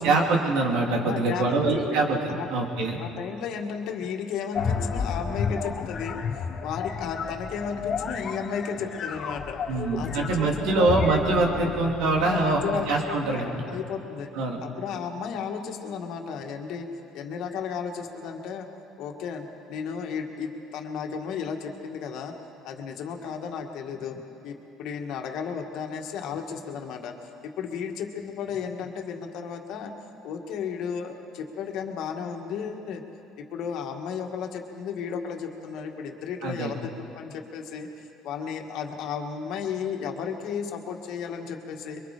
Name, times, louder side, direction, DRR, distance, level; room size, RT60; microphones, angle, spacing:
voice 1, 0.0-3.0 9.7-13.4 14.4-14.6 36.4-36.7, right 3 dB, 80° right, 1 dB, 3.0 m, -24 dB
voice 2, 1.0-2.0 2.3-2.5 3.0-9.6 9.9-11.2 12.1-14.3 14.6-16.9 17.1-18.7 19.0-22.3 22.6-24.2 24.4-29.9 30.2-33.0 33.4-36.9 37.2-42.0, left 6 dB, 70° left, 3 dB, 2.0 m, -34 dB
sound 1, 4.5-13.3, left 6 dB, 50° left, 1.4 m, -32 dB
23.5 x 23.5 x 5.1 m, 2.8 s
supercardioid pair, 85°, 0 cm